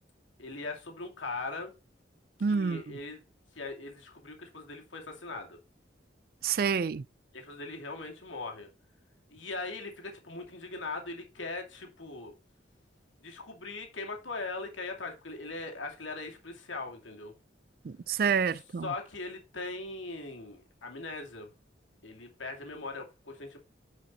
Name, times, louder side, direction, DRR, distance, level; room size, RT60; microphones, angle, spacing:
voice 1, 0.4-1.7 2.5-3.2 3.5-5.6 7.3-8.7 9.3-12.3 13.2-17.3 18.8-21.5 22.0-23.6, left 3 dB, 85° left, 2.4 m, -40 dB
voice 2, 2.4-3.0 6.4-7.0 17.8-18.9, right 6 dB, 50° right, 0.4 m, -28 dB
10.0 x 5.3 x 4.0 m
head